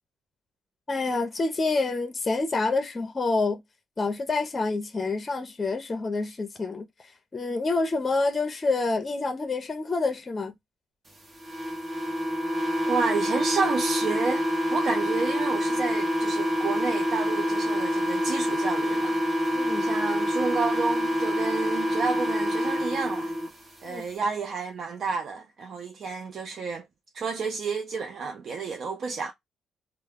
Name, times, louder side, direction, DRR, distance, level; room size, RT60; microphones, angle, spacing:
voice 1, 0.9-3.6 4.0-10.5 19.5-19.9 23.8-24.0, left 3 dB, 30° left, 0.6 m, -27 dB
sound 1, 11.4-23.5, equal, 30° right, 0.9 m, -26 dB
voice 2, 12.9-19.2 19.8-23.3 23.8-26.8 27.1-29.3, right 4 dB, 55° right, 0.4 m, -30 dB
2.2 x 2.0 x 3.3 m
cardioid pair, 90°, 0 cm